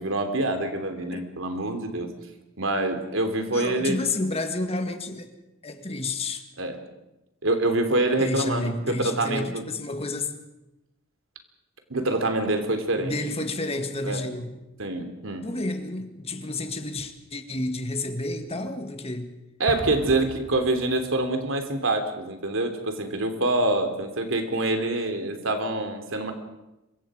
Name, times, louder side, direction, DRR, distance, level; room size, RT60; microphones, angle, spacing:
voice 1, 0.0-2.1 2.6-4.0 6.6-6.8 7.4-9.6 11.9-13.1 14.0-14.3 14.8-15.5 19.6-26.3, right 2 dB, 75° right, 3.2 m, -26 dB
voice 2, 3.5-5.3 5.6-6.4 8.2-10.4 13.0-14.5 15.4-19.3, left 2 dB, 30° left, 1.8 m, -30 dB
Explosion, 19.7-21.3, left 1 dB, 80° left, 4.3 m, -38 dB
26.5 x 23.5 x 5.1 m
head